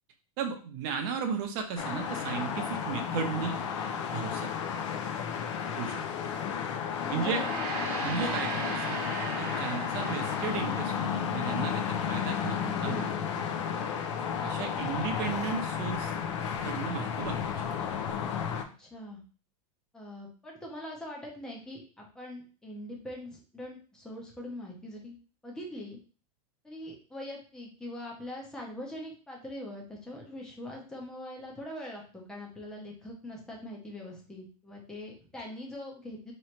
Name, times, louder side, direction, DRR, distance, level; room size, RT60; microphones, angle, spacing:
voice 1, 0.4-3.6 4.1-4.5 5.8-6.0 7.1-7.4 8.0-9.0 9.4-13.3 14.4-16.1 16.6-17.6, right 6 dB, 35° right, 4 dB, 0.7 m, -35 dB
sound 1, 1.8-18.6, left 7 dB, 50° left, 0.5 m, -32 dB
voice 2, 7.0-7.6 14.6-14.8 18.8-19.2 19.9-25.1 25.4-26.0 26.6-36.3, left 1 dB, 5° left, -1 dB, 0.6 m, -42 dB
Gong, 7.0-11.7, right 6 dB, 80° right, 0.8 m, -39 dB
3.0 x 3.0 x 4.4 m, 0.38 s
supercardioid pair, 180°, 19 cm